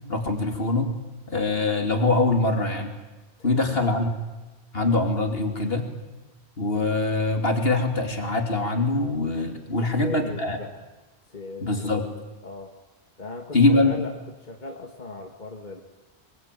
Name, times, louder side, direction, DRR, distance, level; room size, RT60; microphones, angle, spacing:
voice 1, 0.1-0.9 1.3-2.9 3.4-4.1 4.7-5.9 6.6-10.6 11.6-12.1 13.5-14.0, left 2 dB, 65° left, 4 dB, 3.2 m, -23 dB
voice 2, 3.4-4.1 9.8-10.9 11.3-12.1 12.4-12.7 13.2-15.8, left 2 dB, 45° left, 1 dB, 2.3 m, -38 dB
24.0 x 23.0 x 9.2 m, 1.1 s
omnidirectional pair, 1.1 m